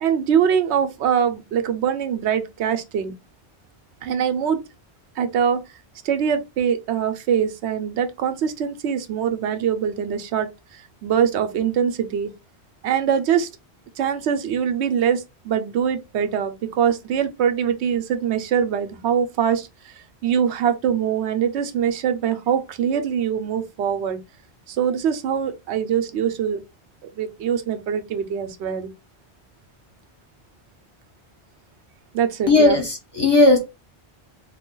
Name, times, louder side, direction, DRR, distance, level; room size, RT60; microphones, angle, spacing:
voice 1, 0.0-3.1 4.0-4.6 5.2-5.6 6.0-12.3 12.8-13.5 14.0-19.9 20.2-24.2 24.7-26.6 27.2-28.9 32.1-32.8, right 8 dB, 90° right, 0.9 m, -23 dB
voice 2, 32.5-33.6, left 2 dB, 25° left, 0.8 m, -16 dB
3.2 x 2.2 x 3.7 m
omnidirectional pair, 1.1 m